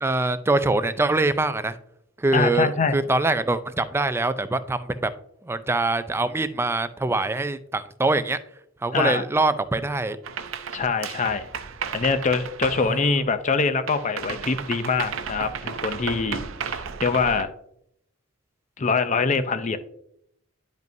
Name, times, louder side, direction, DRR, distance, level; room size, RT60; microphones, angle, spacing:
voice 1, 0.0-1.7 2.2-5.1 5.4-8.4 8.8-10.2 12.8-13.0, right 2 dB, 10° right, 12 dB, 0.3 m, -24 dB
voice 2, 2.3-2.9 8.9-9.2 10.7-11.5 11.9-17.5 18.8-19.8, left 4 dB, 35° left, 10 dB, 0.5 m, -24 dB
sound 1, 10.2-13.6 13.9-17.4, right 6 dB, 70° right, 0.5 m, -34 dB
10.5 x 5.3 x 2.7 m, 0.74 s
head